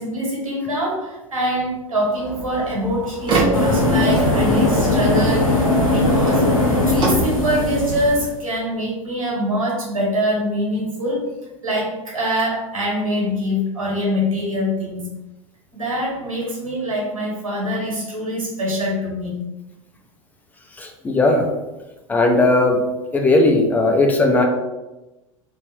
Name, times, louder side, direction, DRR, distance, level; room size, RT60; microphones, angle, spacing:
voice 1, 0.0-6.6 6.9-11.3 11.6-15.1 15.7-19.4, equal, 75° right, -3 dB, 1.0 m, -24 dB
sound 1, 2.2-8.2, right 3 dB, 25° right, 0.7 m, -25 dB
sound 2, 3.5-8.3, left 2 dB, 80° left, 0.8 m, -19 dB
voice 2, 20.7-21.5 22.1-22.8 23.1-24.4, left 2 dB, 10° left, 2 dB, 0.4 m, -17 dB
2.5 x 2.1 x 3.1 m, 1.0 s
figure-of-eight pair, 80°, 17 cm